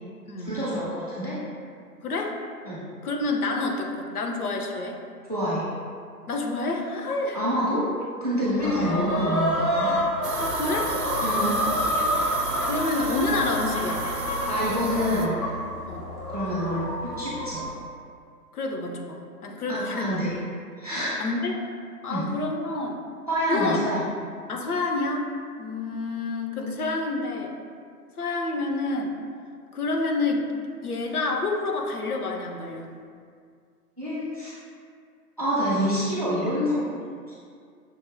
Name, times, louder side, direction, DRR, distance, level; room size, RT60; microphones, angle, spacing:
voice 1, 0.4-1.4 2.7-2.8 5.3-5.7 7.3-7.8 8.2-10.0 11.2-11.6 14.5-15.4 16.3-17.6 19.7-20.3 20.8-21.3 22.1-22.2 23.3-24.1 34.0-34.6 35.4-36.9, equal, 25° right, -9 dB, 0.4 m, -27 dB
voice 2, 2.0-2.3 3.0-5.0 6.3-7.4 8.6-8.9 10.4-10.9 12.0-12.2 12.7-14.0 15.9-16.0 18.5-20.2 21.2-21.6 22.0-23.0 23.5-23.8 24.5-25.3 25.6-27.5 28.2-29.2 29.7-30.5 30.8-32.9, left 3 dB, 65° left, 1 dB, 0.6 m, -28 dB
sound 1, 8.6-17.7, left 1 dB, 85° left, 1.4 m, -28 dB
sound 2, 10.2-15.3, right 4 dB, 75° right, 0.6 m, -33 dB
6.0 x 2.1 x 2.5 m, 2.2 s
figure-of-eight pair, 125°, 48 cm